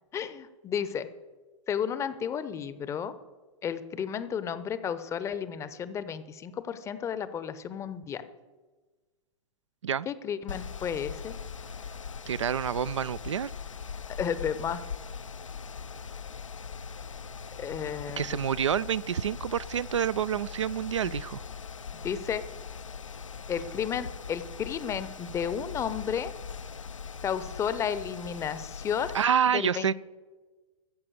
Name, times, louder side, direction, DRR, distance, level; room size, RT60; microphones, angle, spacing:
voice 1, 0.1-1.1 1.7-3.1 3.6-8.2 10.1-11.4 14.2-14.8 17.6-18.4 22.0-22.4 23.5-26.3 27.2-29.1 29.5-29.9, left 8 dB, 15° left, 14 dB, 0.7 m, -32 dB
Mechanical fan, 10.5-29.2, left 6 dB, 75° left, 0.6 m, -41 dB
voice 2, 12.3-13.5 18.2-21.4 29.1-29.9, right 8 dB, 65° right, 17 dB, 0.4 m, -28 dB
14.5 x 7.5 x 7.9 m, 1.3 s
figure-of-eight pair, 105°, 17 cm